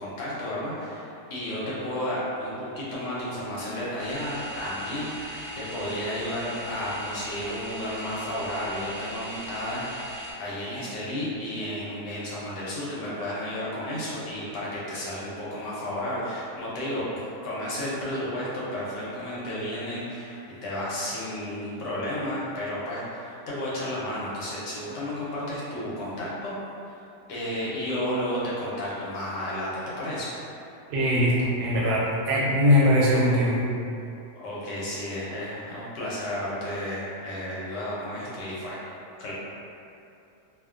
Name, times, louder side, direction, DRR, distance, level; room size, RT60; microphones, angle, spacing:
voice 1, 0.0-10.1 10.4-26.6 26.9-27.0 27.3-30.4 34.4-39.3, left 1 dB, 85° left, -7 dB, 1.3 m, -32 dB
sound 1, 4.0-10.3, right 1 dB, 60° right, 0.8 m, -39 dB
voice 2, 30.9-33.6, left 1 dB, 75° right, -6 dB, 1.1 m, -21 dB
2.9 x 2.1 x 2.3 m, 2.6 s
omnidirectional pair, 1.8 m